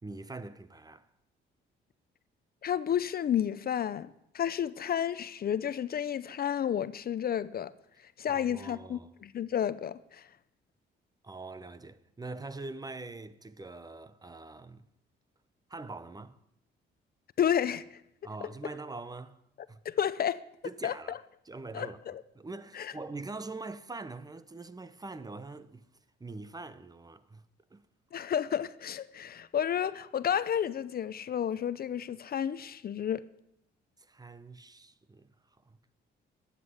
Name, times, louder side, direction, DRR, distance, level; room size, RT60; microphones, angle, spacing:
voice 1, 0.0-1.1 8.3-9.1 11.2-14.9 15.7-16.4 18.2-19.4 19.7-19.8 20.6-22.0 22.3-25.8 26.2-27.4 27.7-27.8 34.0-35.3 35.7-35.8, right 3 dB, 20° right, 0.8 m, -43 dB
voice 2, 2.6-7.7 8.2-10.3 17.4-18.0 18.4-18.5 19.8-20.4 20.8-20.9 21.7-22.2 22.7-22.9 28.1-33.2, left 9 dB, 50° left, 0.6 m, -31 dB
13.5 x 8.4 x 9.7 m
cardioid pair, 90°, 20 cm